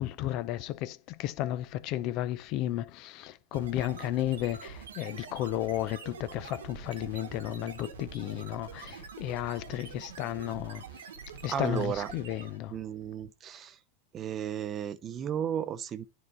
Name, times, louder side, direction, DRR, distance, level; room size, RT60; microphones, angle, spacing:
voice 1, 0.0-10.8 11.4-12.7, left 13 dB, 55° left, 0.7 m, -33 dB
sound 1, 3.5-12.7, right 6 dB, 85° right, 1.3 m, -45 dB
voice 2, 11.5-12.1 12.7-13.8 14.1-16.0, right 9 dB, 35° right, 0.8 m, -34 dB
9.9 x 4.0 x 4.7 m
hypercardioid pair, 100°, 0 cm